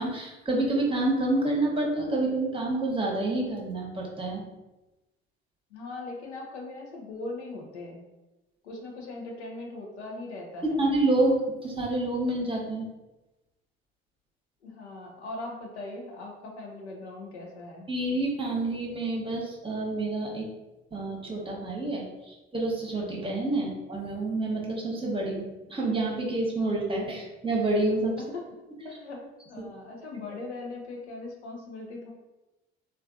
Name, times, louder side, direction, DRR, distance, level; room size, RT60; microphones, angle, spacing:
voice 1, 0.0-4.4 10.6-11.4 11.6-12.9 17.9-20.5 20.9-28.2, right 2 dB, 15° right, -2 dB, 0.9 m, -28 dB
voice 2, 5.7-8.1 8.6-10.9 14.6-17.9 28.3-28.5 28.8-32.1, left 2 dB, 90° left, 0 dB, 0.6 m, -40 dB
3.2 x 2.3 x 2.4 m, 1.0 s
hypercardioid pair, 55°, 33 cm